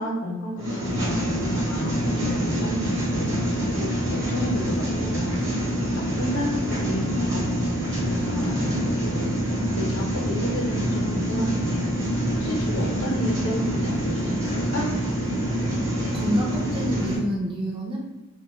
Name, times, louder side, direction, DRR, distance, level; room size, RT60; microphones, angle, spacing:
voice 1, 0.0-5.4 5.9-11.9 12.4-14.9, equal, 70° left, -2 dB, 0.7 m, -31 dB
sound 1, 0.6-17.2, equal, 60° right, 0.9 m, -26 dB
voice 2, 16.1-18.0, equal, 25° right, -2 dB, 0.3 m, -28 dB
2.2 x 2.0 x 3.0 m, 0.97 s
head